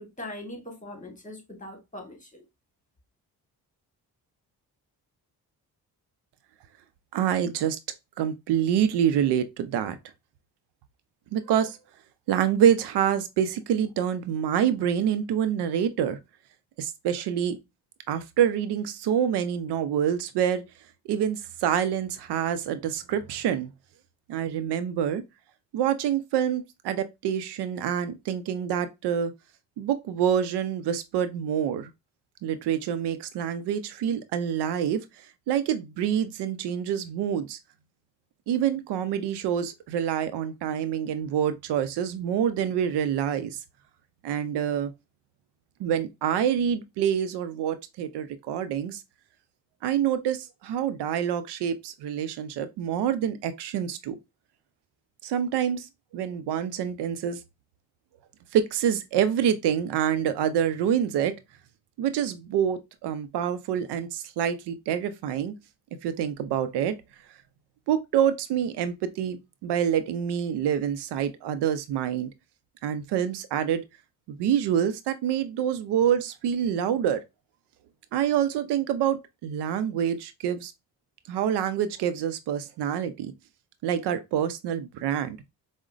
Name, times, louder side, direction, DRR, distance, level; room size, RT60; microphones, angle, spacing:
voice 1, 0.0-2.4, left 1 dB, 20° left, 1.4 m, -41 dB
voice 2, 7.1-7.8 8.2-10.0 11.3-11.8 12.3-16.2 16.8-17.6 18.1-20.6 21.1-23.7 24.3-25.2 25.7-29.3 29.8-31.9 32.4-35.0 35.5-37.6 38.5-43.6 44.2-44.9 45.8-49.0 49.8-54.2 55.2-55.9 56.1-57.4 58.5-61.3 62.0-65.5 66.0-67.0 67.9-72.3 72.8-73.8 74.3-77.2 78.1-80.7 81.3-83.3 83.8-85.4, right 9 dB, 85° right, 0.5 m, -26 dB
4.7 x 2.1 x 2.4 m
supercardioid pair, 55°, 39 cm